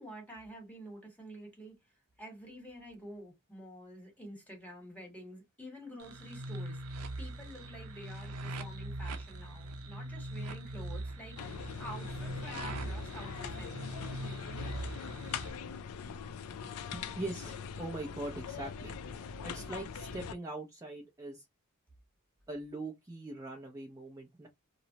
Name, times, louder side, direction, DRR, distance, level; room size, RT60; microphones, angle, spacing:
voice 1, 0.0-1.7 2.2-14.0, equal, 5° left, 1.1 m, -49 dB
sound 1, 6.0-15.5, right 1 dB, 80° right, 0.6 m, -41 dB
sound 2, 11.4-20.3, left 6 dB, 75° left, 0.4 m, -42 dB
voice 2, 16.9-18.9 19.4-21.5 22.5-24.5, right 2 dB, 15° right, 0.5 m, -42 dB
3.0 x 2.0 x 2.7 m
head